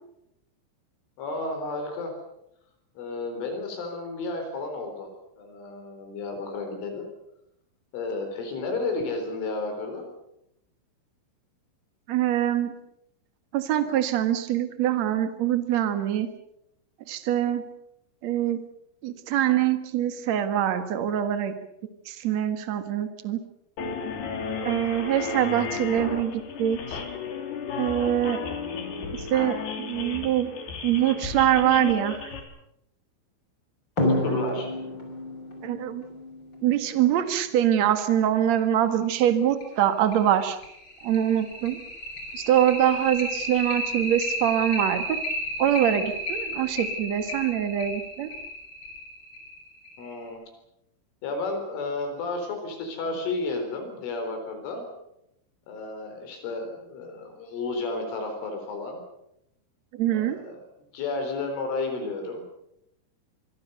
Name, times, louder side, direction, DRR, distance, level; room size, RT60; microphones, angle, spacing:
voice 1, 1.2-2.2 3.0-5.1 5.4-7.1 7.9-10.1 25.2-25.6 34.2-34.7 50.0-50.4 51.2-54.9 55.7-59.0 60.1-60.7 60.9-62.4, left 3 dB, 70° left, 5 dB, 6.5 m, -32 dB
voice 2, 12.1-12.7 13.5-16.3 17.1-17.6 18.2-18.6 19.0-21.5 22.0-23.4 24.6-26.3 26.6-27.0 27.8-28.4 29.3-30.5 30.8-32.3 35.6-36.0 36.6-40.6 41.0-41.8 42.3-45.2 45.6-48.3 59.9-60.4, right 11 dB, 65° right, 9 dB, 1.7 m, -24 dB
sound 1, 23.8-32.4, left 5 dB, 55° left, 4.9 m, -34 dB
sound 2, 34.0-37.1 38.6-38.7 39.1-39.2 39.6-39.7 40.1-50.2, left 1 dB, 20° left, 6.1 m, -31 dB
25.5 x 22.5 x 6.8 m, 0.81 s
omnidirectional pair, 5.8 m